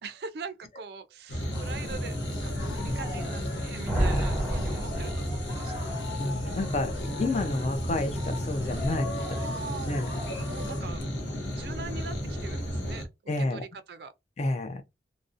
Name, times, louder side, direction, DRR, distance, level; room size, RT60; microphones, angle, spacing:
voice 1, 0.0-5.9 9.2-10.0 10.4-11.0 11.5-14.1, right 5 dB, 65° right, 0.3 m, -42 dB
sound 1, 1.3-13.1, equal, 85° left, 0.7 m, -33 dB
sound 2, 1.5-10.8, left 2 dB, 60° left, 1.3 m, -41 dB
sound 3, 3.8-5.8, right 1 dB, 5° left, 1.1 m, -29 dB
voice 2, 6.2-6.9 7.2-9.2 9.8-10.2 13.3-13.6 14.4-14.8, left 2 dB, 35° left, 0.4 m, -30 dB
2.5 x 2.0 x 2.4 m
head